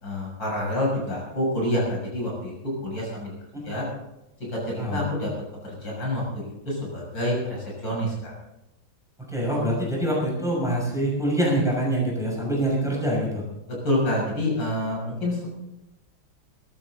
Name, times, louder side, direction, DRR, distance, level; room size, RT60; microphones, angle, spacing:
voice 1, 0.0-2.5 2.8-3.3 3.6-3.9 4.4-5.3 5.6-8.3 13.8-15.5, left 1 dB, 65° left, -3 dB, 7.5 m, -27 dB
voice 2, 9.3-13.4, right 1 dB, ahead, -3 dB, 6.5 m, -25 dB
21.5 x 13.5 x 4.0 m, 0.91 s
omnidirectional pair, 2.2 m